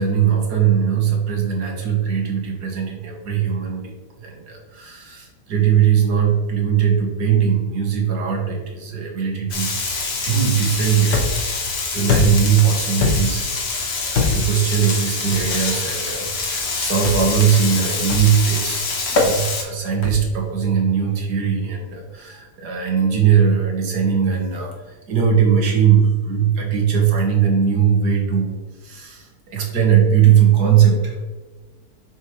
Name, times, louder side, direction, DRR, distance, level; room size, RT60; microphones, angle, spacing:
voice 1, 0.0-3.9 4.2-9.7 10.2-11.3 11.9-18.8 19.1-24.7 25.1-28.5 28.8-29.3 29.5-31.1, right 8 dB, 85° right, 0 dB, 2.0 m, -19 dB
Frying (food), 9.5-19.6, left 4 dB, 70° left, 1.8 m, -26 dB
sound 1, 11.1-11.5 12.1-12.5 13.0-13.4 14.1-14.6 15.3-15.5 17.0-17.4 18.1-18.4 19.2-19.4 20.0-20.4, left 3 dB, 45° left, 1.3 m, -21 dB
6.6 x 6.4 x 3.2 m, 1.3 s
omnidirectional pair, 1.7 m